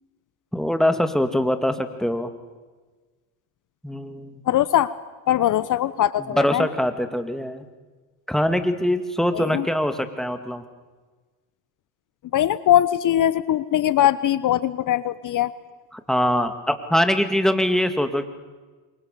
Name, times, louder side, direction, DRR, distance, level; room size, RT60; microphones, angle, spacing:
voice 1, 0.5-2.3 3.8-4.4 6.3-7.6 8.3-10.6 15.9-18.3, equal, ahead, 8 dB, 2.2 m, -23 dB
voice 2, 4.5-4.9 5.3-6.7 9.3-9.7 12.3-15.5, left 12 dB, 45° left, 17 dB, 0.9 m, -21 dB
28.0 x 23.5 x 6.8 m, 1.3 s
supercardioid pair, 95°, 44 cm